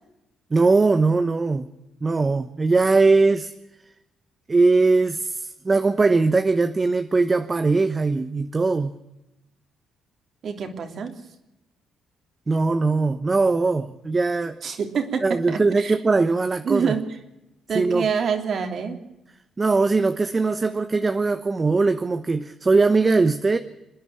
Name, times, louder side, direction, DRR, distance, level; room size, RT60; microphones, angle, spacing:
voice 1, 0.5-1.7 2.0-3.5 4.5-8.9 12.5-14.6 15.2-16.9 17.7-18.1 19.6-23.6, right 3 dB, 30° right, 8 dB, 1.1 m, -20 dB
voice 2, 10.4-11.1 14.6-16.0 16.6-17.2 17.7-19.0, right 6 dB, 55° right, 5 dB, 3.2 m, -26 dB
27.0 x 10.0 x 9.3 m, 0.96 s
cardioid pair, 90°, 0 cm